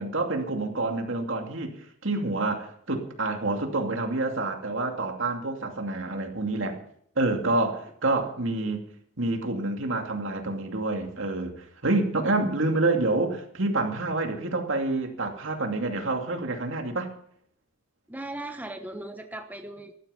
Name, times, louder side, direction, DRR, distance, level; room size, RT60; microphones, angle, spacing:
voice 1, 0.0-6.8 7.2-8.8 9.2-17.1, right 2 dB, 70° right, 2.5 m, -28 dB
voice 2, 18.1-19.9, right 1 dB, 10° right, 1.0 m, -38 dB
15.5 x 12.0 x 5.7 m
head